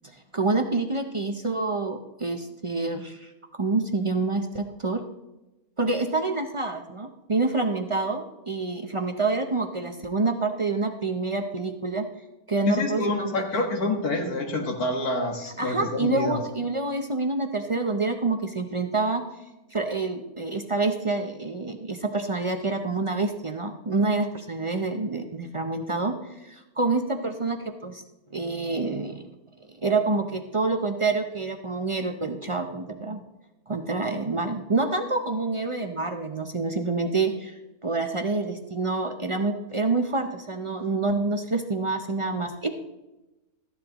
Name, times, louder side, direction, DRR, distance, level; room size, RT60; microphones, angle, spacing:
voice 1, 0.0-5.0 5.8-12.0 12.5-13.4 15.6-19.2 19.7-28.0 28.3-29.3 29.7-33.2 33.7-42.7, right 3 dB, 50° right, 5 dB, 0.4 m, -27 dB
voice 2, 12.7-16.4, left 2 dB, 75° left, 3 dB, 2.1 m, -27 dB
14.0 x 11.0 x 3.0 m, 1.0 s
omnidirectional pair, 1.6 m